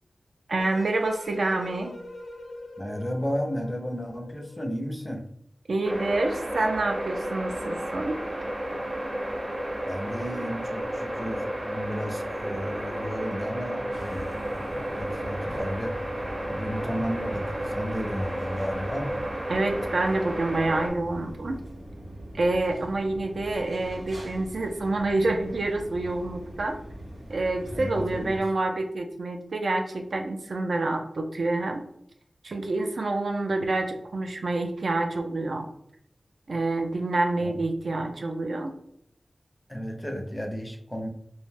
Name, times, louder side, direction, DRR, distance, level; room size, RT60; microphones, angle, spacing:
voice 1, 0.5-1.9 5.7-8.2 19.5-21.6 22.3-26.8 27.3-31.8 32.4-35.7 36.5-38.7, right 2 dB, 70° right, 4 dB, 0.4 m, -27 dB
sound 1, 0.6-4.9, left 2 dB, 85° left, 0.5 m, -43 dB
voice 2, 2.8-5.3 9.9-16.0 16.5-19.1 27.7-28.4 37.4-37.6 39.7-41.1, equal, 10° left, 3 dB, 0.4 m, -33 dB
sound 2, 5.8-20.9, right 1 dB, 35° right, 0.7 m, -32 dB
sound 3, 13.9-28.4, right 1 dB, 85° right, 0.8 m, -42 dB
2.5 x 2.2 x 3.2 m, 0.72 s
wide cardioid pair, 100°, 0 cm